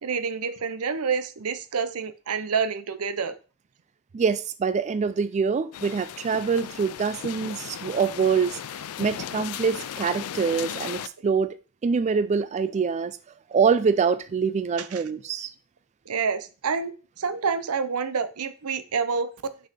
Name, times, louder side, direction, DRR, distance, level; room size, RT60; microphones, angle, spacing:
voice 1, 0.0-3.3 14.8-15.0 16.1-19.3, right 5 dB, 90° right, 0.7 m, -28 dB
voice 2, 4.1-11.5 11.8-13.1 13.5-15.5, right 5 dB, 30° right, 0.3 m, -25 dB
sound 1, 5.7-11.1, left 9 dB, 90° left, 0.4 m, -36 dB
6.0 x 5.4 x 4.2 m
head